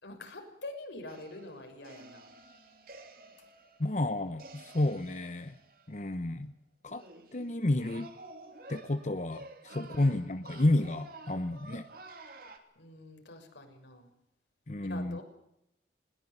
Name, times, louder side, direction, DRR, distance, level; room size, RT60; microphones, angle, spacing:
voice 1, 0.0-2.3 9.7-10.0 12.8-14.1 14.8-15.2, left 2 dB, 90° left, 4 dB, 6.7 m, -45 dB
sound 1, 1.1-6.1 6.9-12.6, right 2 dB, 55° right, 3.1 m, -52 dB
voice 2, 3.8-5.5 5.9-6.5 6.8-7.0 7.3-8.1 8.7-11.9 14.7-15.2, left 1 dB, 40° left, 10 dB, 0.9 m, -31 dB
20.5 x 19.5 x 9.5 m, 0.80 s
head